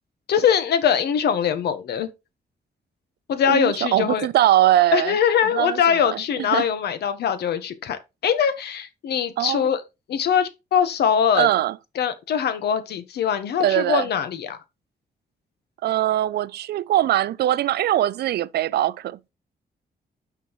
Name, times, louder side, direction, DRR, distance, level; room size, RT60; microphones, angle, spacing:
voice 1, 0.3-2.1 3.3-4.3 4.9-9.8 10.1-11.5 12.0-14.6, left 8 dB, 90° left, 1.1 m, -22 dB
voice 2, 3.5-5.1 5.5-6.2 6.5-6.7 9.4-9.7 11.3-11.8 13.6-14.1 15.8-19.3, right 13 dB, 90° right, 0.4 m, -21 dB
9.3 x 6.1 x 3.1 m
wide cardioid pair, 175°, 16 cm